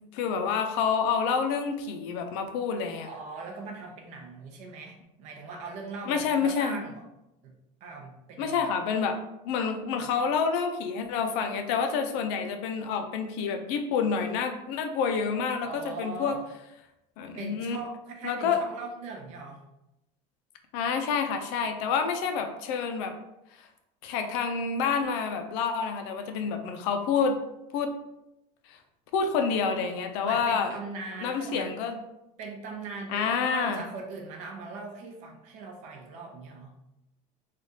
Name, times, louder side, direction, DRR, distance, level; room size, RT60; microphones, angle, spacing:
voice 1, 0.1-3.1 6.1-6.8 8.4-9.2 9.4-16.4 17.2-17.8 18.2-18.6 20.7-23.1 23.6-23.7 24.0-27.4 27.7-27.9 28.7-28.8 29.1-30.8 31.2-32.0 33.1-33.8, left 6 dB, 70° left, 6 dB, 0.4 m, -28 dB
voice 2, 3.0-7.0 7.4-8.6 15.6-16.4 17.3-19.6 30.2-31.7 32.4-36.7, right 3 dB, 45° right, 2 dB, 0.6 m, -40 dB
3.2 x 2.4 x 2.7 m, 0.89 s
cardioid pair, 170°, 16 cm